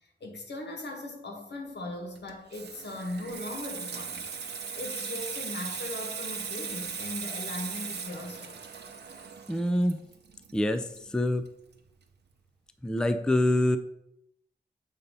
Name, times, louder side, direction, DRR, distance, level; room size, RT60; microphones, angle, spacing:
voice 1, 0.2-4.3 4.8-8.6, left 1 dB, 80° left, 2 dB, 1.5 m, -38 dB
Water tap faucet / Sink (filling or washing), 2.2-11.5 11.8-12.0, right 6 dB, 75° right, 0.7 m, -38 dB
voice 2, 9.5-10.0 10.5-10.9 11.1-11.4 12.8-13.8, left 1 dB, 5° left, 10 dB, 0.4 m, -25 dB
8.0 x 2.8 x 5.3 m, 0.77 s
wide cardioid pair, 80°, 17 cm